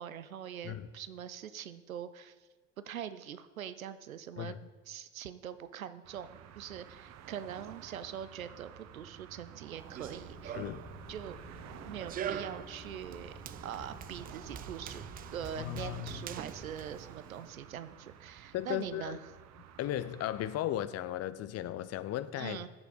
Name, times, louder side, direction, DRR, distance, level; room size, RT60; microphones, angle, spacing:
voice 1, 0.0-2.3 2.8-4.5 4.9-10.6 11.1-11.4 11.9-13.3 13.6-15.0 15.3-19.3 22.4-22.7, right 9 dB, 90° right, 0.6 m, -43 dB
sound 1, 6.0-20.6, right 9 dB, 40° right, 0.7 m, -52 dB
Run, 9.8-17.5, right 9 dB, 25° right, 0.4 m, -44 dB
sound 2, 10.0-16.8, left 1 dB, 90° left, 2.3 m, -52 dB
voice 2, 10.5-10.9 15.6-16.2 18.5-19.2 19.8-22.6, left 12 dB, 40° left, 0.6 m, -36 dB
14.0 x 6.5 x 4.1 m
figure-of-eight pair, 65°, 40 cm